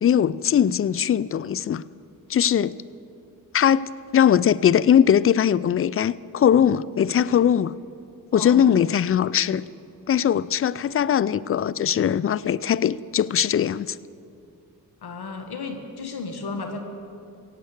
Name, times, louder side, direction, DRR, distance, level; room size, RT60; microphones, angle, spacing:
voice 1, 0.0-1.8 2.3-2.7 3.5-7.7 8.3-9.7 10.1-14.0, left 9 dB, 30° left, 0.4 m, -20 dB
voice 2, 8.3-8.7 15.0-16.8, left 4 dB, 60° left, 1.7 m, -33 dB
16.0 x 8.1 x 8.0 m
hypercardioid pair, 40°, 44 cm